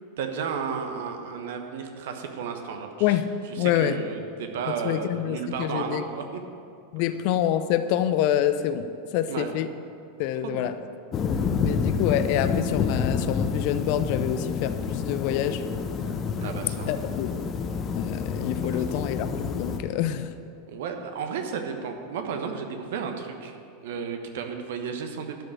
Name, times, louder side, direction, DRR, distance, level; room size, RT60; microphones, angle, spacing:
voice 1, 0.2-2.9 3.6-6.2 9.3-9.5 10.4-10.7 16.4-16.9 18.7-18.8 20.7-23.5 23.8-25.4, right 6 dB, 60° right, 5 dB, 1.2 m, -33 dB
voice 2, 3.6-4.0 4.7-6.0 6.9-9.7 10.2-10.7 11.6-15.6 16.9-17.5 17.9-20.3, left 11 dB, 50° left, 11 dB, 0.6 m, -26 dB
sound 1, 11.1-19.8, left 5 dB, 30° left, 1.0 m, -28 dB
12.0 x 6.5 x 8.9 m, 2.5 s
figure-of-eight pair, 85°, 0 cm